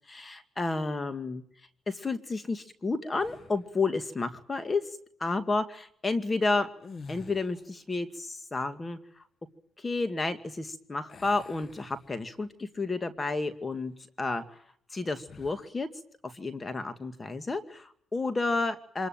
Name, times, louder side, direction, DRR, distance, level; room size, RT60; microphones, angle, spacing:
voice 1, 0.1-1.4 1.9-4.8 5.2-6.7 7.1-9.2 9.8-14.6 14.9-15.9 16.2-19.1, left 3 dB, 25° left, 10 dB, 2.3 m, -31 dB
sound 1, 3.2-3.8 6.7-7.8 11.1-12.5 13.0-13.2 15.2-15.7, left 4 dB, 45° left, 1.5 m, -49 dB
25.5 x 21.0 x 9.1 m, 0.66 s
cardioid pair, 90°, 0 cm